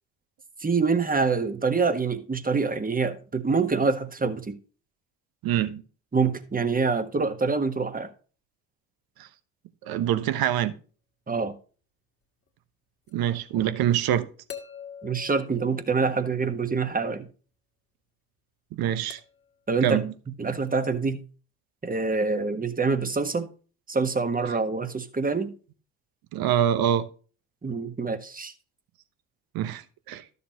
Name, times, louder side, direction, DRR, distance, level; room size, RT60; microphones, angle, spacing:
voice 1, 0.6-4.5 6.1-8.1 11.3-11.5 15.0-17.3 19.7-20.0 20.3-21.2 21.8-23.5 23.9-25.5 27.6-28.5, right 4 dB, 20° right, 1.4 m, -26 dB
voice 2, 5.4-5.8 9.9-10.7 13.1-14.3 18.7-19.2 19.8-20.1 26.3-27.0 29.5-30.2, right 10 dB, 60° right, 1.1 m, -25 dB
sound 1, 13.1-13.2 14.5-16.5 19.1-19.6 20.7-20.8, left 7 dB, 35° left, 1.7 m, -44 dB
12.5 x 7.0 x 3.0 m
hypercardioid pair, 55°, 41 cm